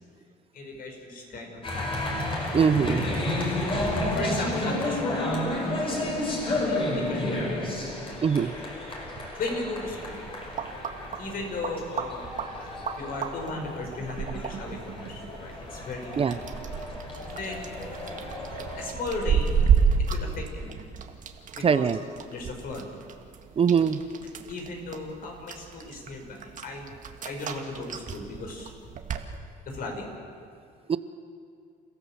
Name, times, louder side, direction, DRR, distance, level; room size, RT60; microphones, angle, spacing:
voice 1, 0.5-1.9 2.1-2.3 4.1-6.0 6.4-7.8 9.4-10.2 11.2-12.4 13.0-16.4 17.3-17.8 18.8-19.6 20.1-20.7 21.5-21.9 22.3-22.9 24.5-26.9 27.2-28.7 29.6-30.1, left 2 dB, 60° left, 3 dB, 5.4 m, -36 dB
sound 1, 1.6-18.8, left 1 dB, 30° left, 5.8 m, -32 dB
voice 2, 2.5-3.1 8.2-8.5 16.2-16.4 21.6-22.0 23.6-24.0 30.9-31.0, right 6 dB, 35° right, 13 dB, 0.7 m, -22 dB
sound 2, 10.1-29.3, right 6 dB, 50° right, 1.9 m, -32 dB
29.0 x 15.0 x 7.5 m, 2.3 s
cardioid pair, 110°, 17 cm